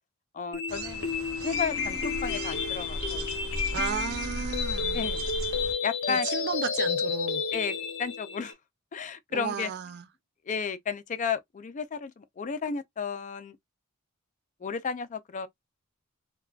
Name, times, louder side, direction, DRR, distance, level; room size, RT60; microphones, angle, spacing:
voice 1, 0.3-1.1 1.4-3.3 4.9-5.2 5.8-6.3 7.5-7.7 8.0-8.5 8.9-9.7 10.5-13.6 14.6-15.5, left 6 dB, 35° left, 0.4 m, -33 dB
sound 1, 0.5-8.5, left 5 dB, 60° left, 0.7 m, -31 dB
sound 2, 0.7-5.7, right 1 dB, 85° right, 0.7 m, -37 dB
voice 2, 3.7-5.1 6.1-7.4 9.3-10.0, right 7 dB, 50° right, 0.4 m, -34 dB
3.5 x 2.3 x 2.3 m
head